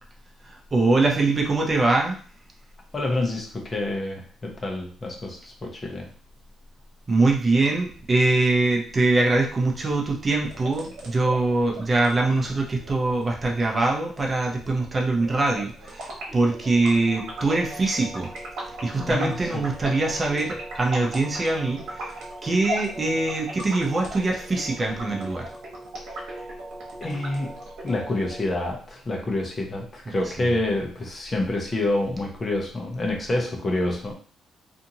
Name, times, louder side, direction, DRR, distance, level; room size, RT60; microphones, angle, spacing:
voice 1, 0.5-2.1 7.1-18.3 18.8-22.1 22.4-25.5 30.1-30.2, right 2 dB, 30° right, 0 dB, 0.6 m, -23 dB
voice 2, 2.9-6.1 19.0-19.6 26.3-26.5 27.0-27.6 27.8-34.1, left 2 dB, 35° left, 0 dB, 0.8 m, -28 dB
sound 1, 10.4-28.4, right 1 dB, 75° right, 1.0 m, -38 dB
2.7 x 2.5 x 2.8 m, 0.43 s
cardioid pair, 90°, 0 cm